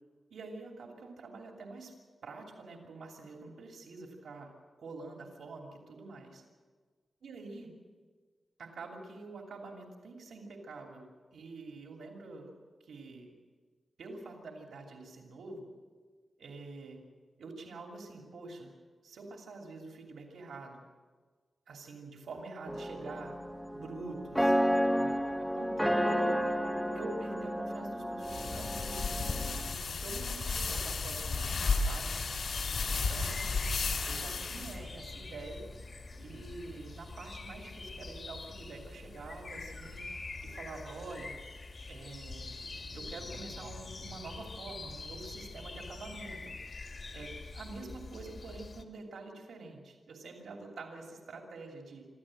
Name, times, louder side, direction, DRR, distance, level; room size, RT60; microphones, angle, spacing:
voice 1, 0.3-1.9 2.2-4.5 4.8-6.4 7.2-7.7 8.6-12.5 12.8-13.3 14.0-15.7 16.4-17.0 17.4-18.7 19.0-20.8 21.7-23.4 23.7-26.3 26.9-29.5 29.9-31.5 31.8-32.1 32.9-33.6 34.0-35.7 36.2-41.4 41.9-42.5 42.9-46.5 47.1-52.1, right 3 dB, 85° right, 1 dB, 2.9 m, -46 dB
sound 1, 22.7-29.7, equal, ahead, 0.8 m, -32 dB
sound 2, 28.2-34.8, left 4 dB, 65° left, 3.5 m, -33 dB
sound 3, 31.1-48.8, left 3 dB, 45° left, 1.9 m, -45 dB
25.0 x 14.0 x 7.7 m, 1.5 s
wide cardioid pair, 160°, 0 cm